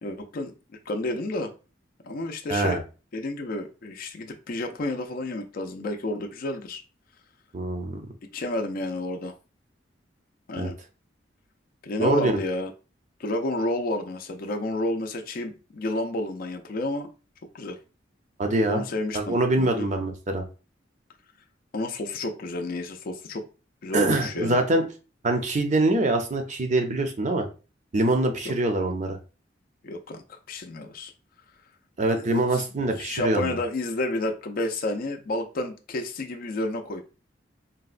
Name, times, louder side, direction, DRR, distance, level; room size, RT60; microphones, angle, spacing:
voice 1, 0.0-0.5 0.9-1.5 2.0-2.8 3.1-6.8 8.3-9.3 10.5-10.8 11.8-12.7 13.2-17.1 17.5-17.8 18.7-19.9 21.7-23.4 23.8-24.6 28.4-28.5 29.8-31.1 32.1-32.6 33.0-37.0, left 2 dB, 50° left, 5 dB, 0.4 m, -30 dB
voice 2, 2.5-2.8 7.5-8.1 10.6-10.7 12.0-12.4 18.4-18.8 19.1-20.4 23.9-24.8 25.2-27.5 27.9-29.2 32.0-33.6, right 2 dB, 40° right, 5 dB, 0.5 m, -24 dB
3.9 x 2.1 x 2.4 m, 0.33 s
head